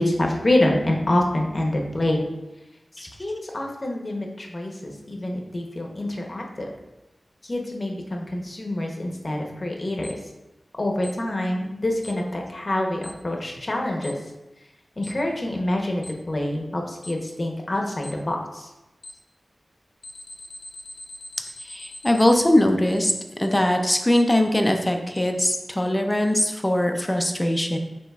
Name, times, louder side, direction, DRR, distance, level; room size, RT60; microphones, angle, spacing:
voice 1, 0.0-2.3 3.0-6.7 7.4-10.1 10.8-14.2 15.0-18.7, left 1 dB, 45° left, 1 dB, 0.8 m, -26 dB
Alarm, 10.0-10.1 11.0-11.1 12.0-12.1 13.0-13.1 14.0-14.1 15.0-15.1 16.0-16.1 17.0-17.1 18.0-18.1 19.0-19.1 20.0-22.5, left 1 dB, 85° left, 0.5 m, -40 dB
voice 2, 21.6-23.1 23.4-27.8, left 1 dB, 20° left, 4 dB, 0.5 m, -21 dB
7.2 x 3.0 x 2.3 m, 1.0 s
cardioid pair, 50°, 0 cm